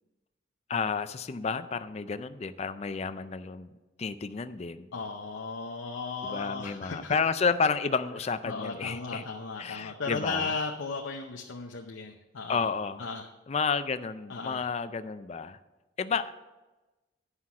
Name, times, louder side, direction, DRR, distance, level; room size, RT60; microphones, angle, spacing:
voice 1, 0.7-3.7 4.0-4.9 6.2-9.2 9.6-10.6 12.5-13.1 13.5-15.6 16.0-16.3, left 5 dB, 35° left, 12 dB, 0.4 m, -31 dB
voice 2, 4.9-7.2 8.5-12.6 13.0-13.3 14.3-14.7, left 4 dB, 85° left, 2 dB, 0.7 m, -35 dB
9.7 x 5.7 x 6.0 m, 1.1 s
head